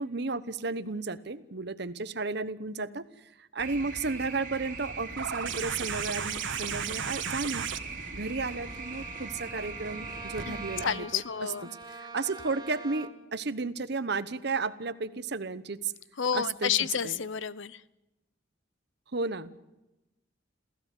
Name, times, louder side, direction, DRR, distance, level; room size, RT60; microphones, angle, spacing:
voice 1, 0.0-7.7 8.1-15.9 16.3-17.2 19.1-19.5, right 3 dB, 60° right, 14 dB, 1.0 m, -33 dB
sound 1, 3.6-10.8, right 4 dB, 45° right, 3.7 m, -40 dB
sound 2, 5.2-10.5 11.8-11.9, right 7 dB, 85° right, 1.3 m, -36 dB
Bowed string instrument, 8.4-13.4, right 3 dB, 20° right, 1.4 m, -45 dB
voice 2, 10.8-11.7 16.2-17.8, left 8 dB, 90° left, 18 dB, 0.8 m, -30 dB
27.5 x 16.0 x 8.4 m, 0.99 s
head